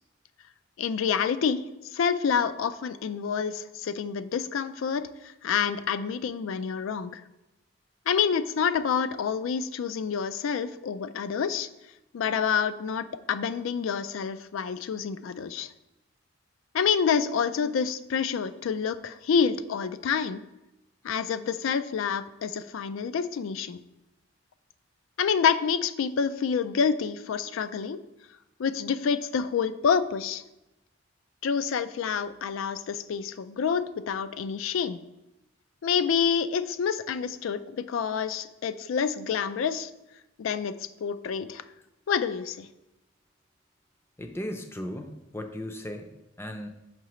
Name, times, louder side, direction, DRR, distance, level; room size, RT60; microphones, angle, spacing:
voice 1, 0.8-1.7 1.9-7.2 8.1-11.7 12.1-15.7 16.7-20.4 21.0-23.8 25.2-28.0 28.6-30.4 31.4-35.0 35.8-39.9 40.4-41.6 42.1-42.7, left 6 dB, 75° left, 13 dB, 0.3 m, -28 dB
voice 2, 44.2-46.1 46.4-46.7, left 1 dB, 10° left, 5 dB, 0.5 m, -36 dB
6.0 x 5.6 x 3.0 m, 0.93 s
head